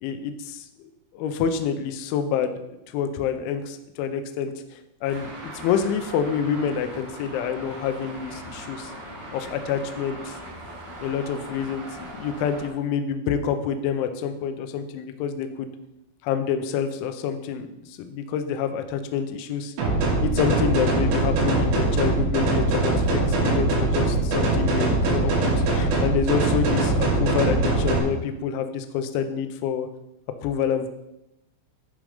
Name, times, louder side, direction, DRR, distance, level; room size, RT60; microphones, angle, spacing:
voice 1, 0.0-2.6 2.9-8.9 9.3-10.4 11.0-15.8 16.2-19.7 20.2-29.9 30.4-30.9, left 7 dB, 80° left, 8 dB, 2.8 m, -27 dB
Traffic noise roadway noise, 5.0-12.7, right 1 dB, 30° right, 4.0 m, -40 dB
sound 1, 19.8-28.0, right 2 dB, 65° right, 4.4 m, -22 dB
10.5 x 5.1 x 5.0 m, 0.88 s
omnidirectional pair, 5.9 m